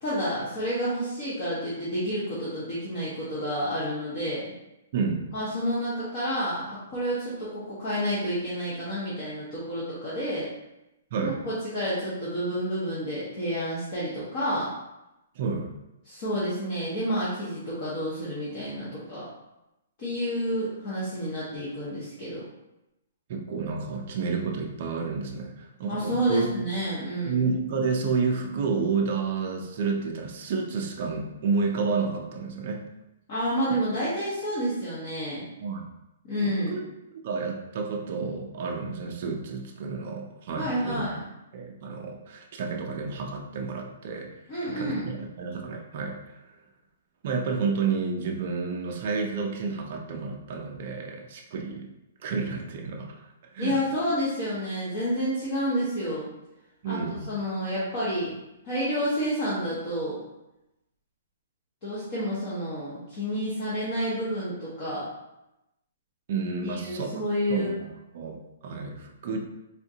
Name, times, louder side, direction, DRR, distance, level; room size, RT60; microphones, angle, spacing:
voice 1, 0.0-4.5 5.3-10.5 11.2-14.7 16.0-19.3 20.0-22.4 25.9-27.4 33.3-35.5 36.2-36.8 40.6-41.2 44.5-45.1 53.6-56.3 56.8-58.3 58.6-60.2 61.8-65.1 66.6-67.7, equal, 30° left, -9 dB, 0.8 m, -29 dB
voice 2, 4.9-5.3 11.1-11.4 15.4-15.7 23.3-26.4 27.3-32.8 35.6-35.8 36.7-36.8 37.2-41.0 41.5-44.3 44.6-46.4 47.2-51.9 52.2-53.2 53.5-53.7 56.8-57.3 66.3-67.2 67.5-69.4, right 5 dB, 35° right, 1 dB, 0.4 m, -30 dB
3.5 x 2.4 x 2.7 m, 0.91 s
hypercardioid pair, 180°, 0 cm